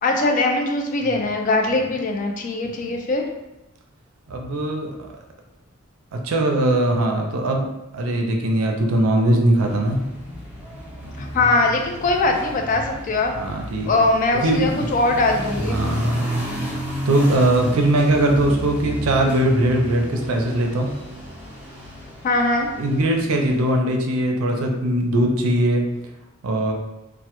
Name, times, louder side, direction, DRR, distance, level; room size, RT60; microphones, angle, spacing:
voice 1, 0.0-3.2 11.2-13.3 13.8-15.8 22.2-22.7, left 2 dB, 40° left, 3 dB, 0.3 m, -21 dB
voice 2, 4.3-5.0 6.1-7.7 7.9-10.0 13.4-13.9 14.4-14.9 15.7-16.3 17.1-20.9 22.8-25.8 26.4-26.7, right 1 dB, 85° right, 2 dB, 0.4 m, -20 dB
sound 1, 9.6-23.7, equal, 5° right, 0.5 m, -31 dB
2.1 x 2.0 x 2.8 m, 0.94 s
head